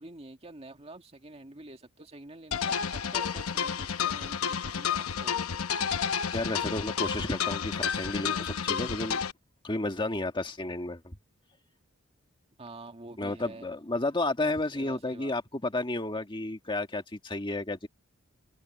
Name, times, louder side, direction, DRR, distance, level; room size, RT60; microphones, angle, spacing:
voice 1, 0.0-5.4 12.6-13.7 14.7-15.3, right 2 dB, 30° right, 2.1 m, -47 dB
sound 1, 2.5-9.3, left 7 dB, 85° left, 0.9 m, -31 dB
voice 2, 6.3-9.2 9.6-11.2 13.2-17.9, left 2 dB, 25° left, 1.7 m, -32 dB
head